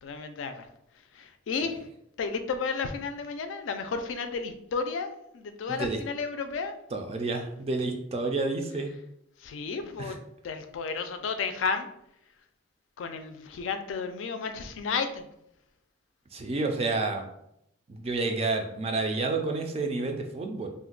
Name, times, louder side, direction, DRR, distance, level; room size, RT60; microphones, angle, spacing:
voice 1, 0.0-0.7 1.1-1.8 2.2-5.1 5.3-6.7 9.4-10.2 10.4-11.9 13.0-15.3, left 5 dB, 75° left, 8 dB, 0.4 m, -32 dB
voice 2, 5.7-6.0 6.9-8.9 10.0-10.1 16.3-17.2 17.9-20.7, right 3 dB, 30° right, 4 dB, 0.3 m, -29 dB
2.5 x 2.1 x 3.8 m, 0.79 s
head